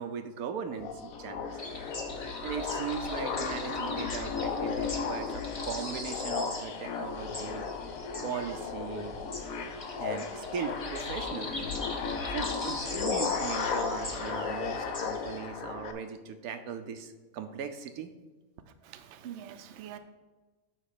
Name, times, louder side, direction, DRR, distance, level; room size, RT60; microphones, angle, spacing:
voice 1, 0.0-1.6 2.4-7.6 8.2-9.1 10.0-11.5 12.3-18.1, right 7 dB, 85° right, 8 dB, 1.2 m, -38 dB
sound 1, 0.6-15.9, left 6 dB, 75° left, 1.2 m, -35 dB
sound 2, 1.6-15.4, left 1 dB, 25° left, 1.1 m, -41 dB
voice 2, 18.8-20.0, right 10 dB, 60° right, 9 dB, 0.8 m, -44 dB
9.2 x 3.3 x 6.6 m, 1.2 s
omnidirectional pair, 1.5 m